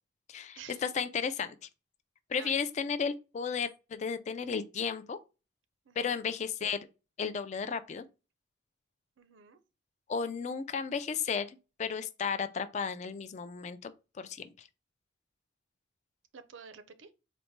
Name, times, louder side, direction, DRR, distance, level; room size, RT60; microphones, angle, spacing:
voice 1, 0.3-1.7 2.3-5.2 6.0-6.9 7.2-8.0 10.1-13.9 14.2-14.7, left 6 dB, 35° left, 0.3 m, -34 dB
voice 2, 5.9-6.3 9.2-9.6 16.3-17.1, right 6 dB, 80° right, 0.5 m, -50 dB
4.0 x 2.1 x 4.4 m
head